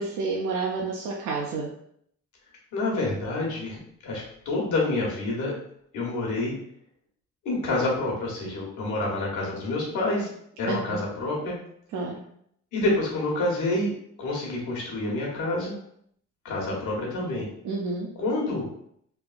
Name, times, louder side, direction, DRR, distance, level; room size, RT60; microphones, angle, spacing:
voice 1, 0.0-1.7 10.7-11.0 11.9-12.2 17.6-18.1, right 3 dB, 80° right, -1 dB, 0.5 m, -29 dB
voice 2, 2.7-5.5 5.9-6.5 7.4-10.3 10.6-11.6 12.7-13.9 14.2-15.7 16.4-17.5 18.2-18.7, left 2 dB, 80° left, -2 dB, 1.1 m, -28 dB
3.2 x 2.4 x 2.4 m, 0.69 s
cardioid pair, 90°, 30 cm